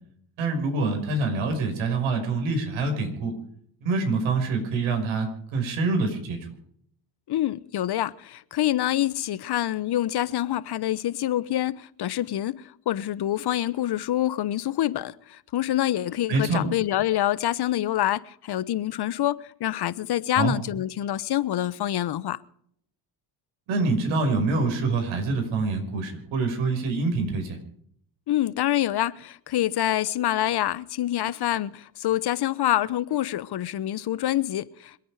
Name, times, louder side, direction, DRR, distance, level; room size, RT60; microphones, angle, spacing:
voice 1, 0.4-3.3 3.8-6.4 16.3-16.6 20.4-20.5 23.7-27.6, right 3 dB, 70° right, 5.7 m, -25 dB
voice 2, 7.3-22.4 28.3-35.0, left 13 dB, 50° left, 1.1 m, -26 dB
27.0 x 9.3 x 4.9 m
supercardioid pair, 75°, 49 cm